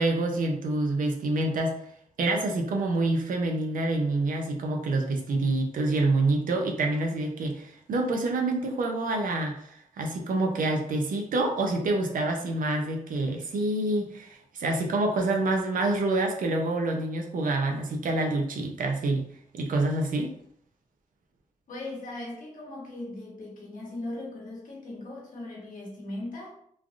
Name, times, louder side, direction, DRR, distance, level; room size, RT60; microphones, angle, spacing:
voice 1, 0.0-1.7 2.2-19.3 19.5-20.3, right 2 dB, 80° right, 2 dB, 0.6 m, -27 dB
voice 2, 21.7-26.6, left 2 dB, 75° left, -3 dB, 1.1 m, -38 dB
3.2 x 2.4 x 2.5 m, 0.67 s
cardioid pair, 70°, 14 cm